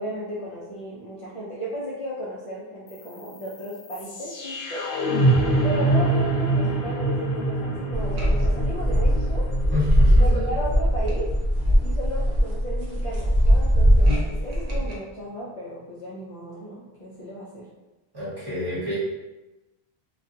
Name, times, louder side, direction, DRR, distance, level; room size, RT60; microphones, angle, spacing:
voice 1, 0.0-4.9 5.6-9.5 10.2-11.3 11.8-17.7, right 1 dB, 45° left, -7 dB, 0.4 m, -34 dB
sound 1, 2.9-12.9, right 2 dB, 80° left, 0.8 m, -26 dB
sound 2, 7.9-14.9, equal, 60° right, 0.8 m, -20 dB
voice 2, 9.7-10.4 18.1-19.0, left 2 dB, 25° right, -10 dB, 0.9 m, -28 dB
2.4 x 2.2 x 2.6 m, 1.1 s
omnidirectional pair, 1.1 m